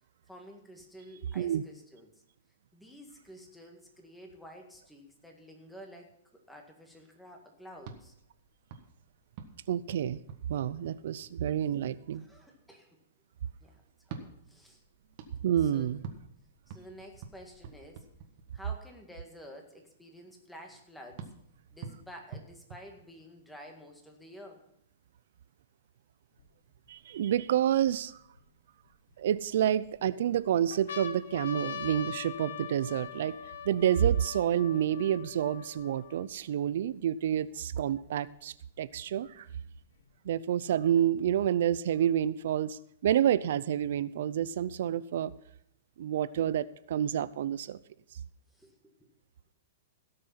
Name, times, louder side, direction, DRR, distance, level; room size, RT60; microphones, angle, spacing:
voice 1, 0.3-2.1 2.7-8.1 12.1-12.9 13.6-13.8 14.1-14.8 15.6-15.9 16.7-18.0 18.5-21.3 21.7-24.6 48.5-48.7, equal, ahead, 2 dB, 1.9 m, -51 dB
sound 1, 7.8-11.6 14.0-18.8 21.2-23.6, right 6 dB, 45° right, 1.6 m, -48 dB
voice 2, 9.7-10.2 10.5-12.3 15.4-16.0 26.9-28.2 29.2-33.4 33.7-39.5 40.2-45.3 46.0-47.8, right 10 dB, 65° right, 17 dB, 0.5 m, -29 dB
sound 2, 26.4-26.5 27.1-28.4 29.1-29.9 30.4-30.5 30.7-36.3 37.0-37.1 37.3-38.3 39.3-40.3, left 8 dB, 80° left, 1.3 m, -43 dB
17.0 x 6.6 x 5.7 m, 0.73 s
hypercardioid pair, 155°, 0 cm